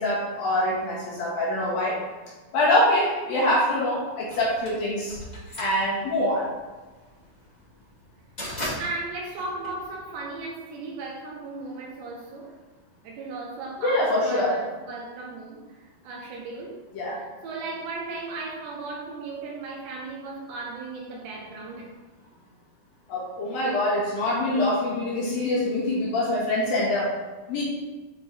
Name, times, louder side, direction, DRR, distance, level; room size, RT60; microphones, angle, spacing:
voice 1, 0.0-2.0 2.5-5.2 5.6-6.5 13.8-14.5 16.9-17.2 23.1-27.1 27.5-27.6, left 1 dB, 60° left, -6 dB, 2.9 m, -24 dB
sound 1, 4.3-10.4, equal, 20° left, 1.0 m, -37 dB
voice 2, 8.4-12.5 13.0-16.8 17.1-21.9, right 3 dB, 75° right, -1 dB, 2.9 m, -36 dB
9.5 x 5.1 x 3.4 m, 1.2 s
omnidirectional pair, 5.4 m